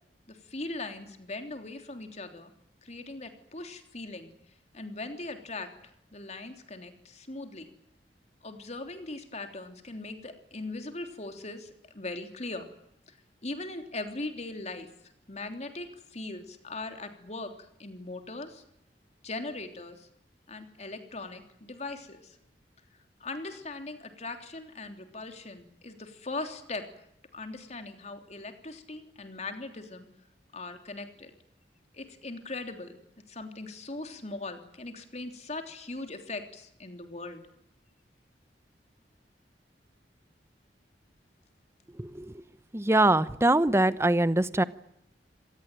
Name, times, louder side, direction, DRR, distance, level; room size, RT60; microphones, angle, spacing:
voice 1, 0.3-2.5 2.8-4.3 4.7-5.7 6.1-7.7 8.4-12.7 13.1-13.2 13.4-14.9 15.3-17.5 17.8-18.6 19.2-20.1 20.5-22.4 23.2-26.8 27.3-30.1 30.5-31.3 31.9-33.0 33.3-37.4, left 2 dB, 40° left, 6 dB, 3.3 m, -40 dB
voice 2, 42.0-42.3 42.7-44.6, right 1 dB, 15° right, 15 dB, 0.9 m, -23 dB
26.0 x 19.0 x 9.1 m, 0.77 s
head